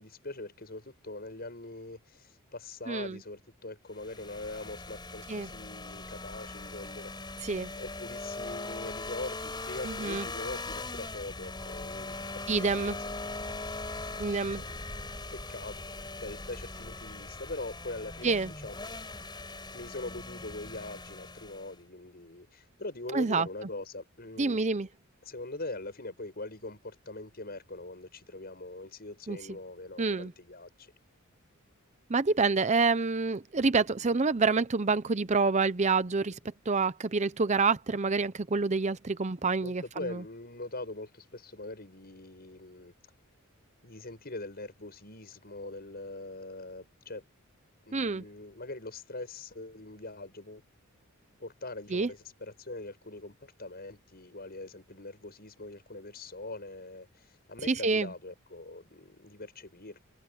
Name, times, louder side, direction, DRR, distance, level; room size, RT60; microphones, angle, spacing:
voice 1, 0.0-13.0 13.8-14.7 15.3-15.8 16.2-18.8 19.7-24.6 25.2-30.9 39.6-42.9 43.8-47.2 47.8-50.6 51.4-60.0, left 2 dB, 45° left, 7.9 m, -42 dB
voice 2, 2.9-3.2 5.3-5.5 7.4-7.7 9.8-10.2 12.5-13.0 14.2-14.6 18.2-18.5 23.1-23.5 24.4-24.9 29.3-29.4 30.0-30.3 32.1-36.4 36.7-39.8 40.1-40.2 47.9-48.2 51.9-52.1 57.7-58.1, right 4 dB, 35° right, 0.6 m, -27 dB
sound 1, 3.9-21.8, left 2 dB, 20° left, 4.9 m, -40 dB
open air
head